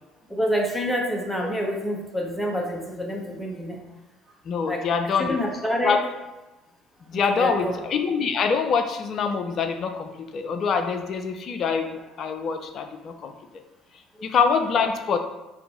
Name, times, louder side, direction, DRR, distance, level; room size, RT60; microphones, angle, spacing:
voice 1, 0.3-3.8 4.6-4.8 5.2-6.0 7.1-7.8 14.2-14.3, equal, 5° left, -1 dB, 0.8 m, -27 dB
voice 2, 4.5-5.4 5.8-6.0 7.1-13.3 14.2-15.2, left 5 dB, 45° left, 6 dB, 0.4 m, -25 dB
2.6 x 2.6 x 4.1 m, 1.1 s
figure-of-eight pair, 60°, 0 cm